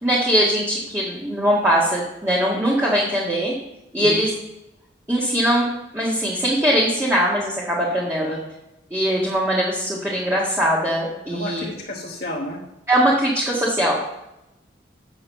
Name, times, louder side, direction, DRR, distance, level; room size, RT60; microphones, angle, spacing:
voice 1, 0.0-3.5 3.9-4.3 5.1-5.7 5.9-8.4 8.9-11.6 12.9-14.0, equal, 15° right, -5 dB, 1.6 m, -21 dB
voice 2, 11.3-12.6, left 1 dB, 55° left, -2 dB, 1.2 m, -31 dB
8.8 x 6.4 x 6.6 m, 0.89 s
head